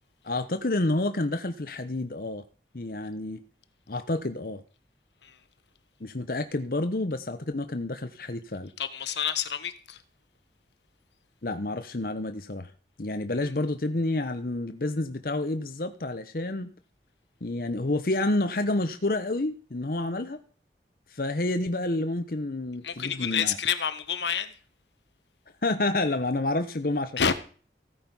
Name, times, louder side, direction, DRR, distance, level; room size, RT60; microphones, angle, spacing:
voice 1, 0.2-2.4 2.7-3.4 3.9-4.6 6.0-8.7 11.4-12.7 13.0-16.7 17.4-20.4 21.1-23.6 25.6-27.3, left 2 dB, 55° left, 0.9 m, -29 dB
voice 2, 8.8-10.0 22.8-24.5 27.2-27.3, left 7 dB, 85° left, 1.3 m, -28 dB
15.5 x 9.1 x 5.5 m
head